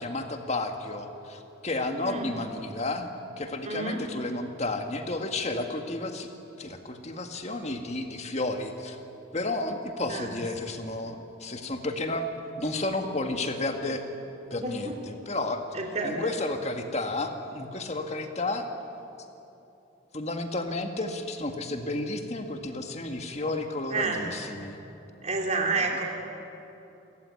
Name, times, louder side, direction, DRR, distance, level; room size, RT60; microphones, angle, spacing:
voice 1, 0.0-3.1 3.4-6.3 6.6-9.0 9.3-12.3 12.6-14.0 14.5-15.6 16.0-18.7 20.1-24.8 25.8-25.9, left 2 dB, 35° left, 5 dB, 1.9 m, -32 dB
voice 2, 3.7-4.1 10.1-10.3 14.6-15.0 15.7-16.2 23.9-24.2 25.2-26.0, right 3 dB, 35° right, 1 dB, 3.2 m, -29 dB
28.5 x 15.5 x 9.7 m, 3.0 s
head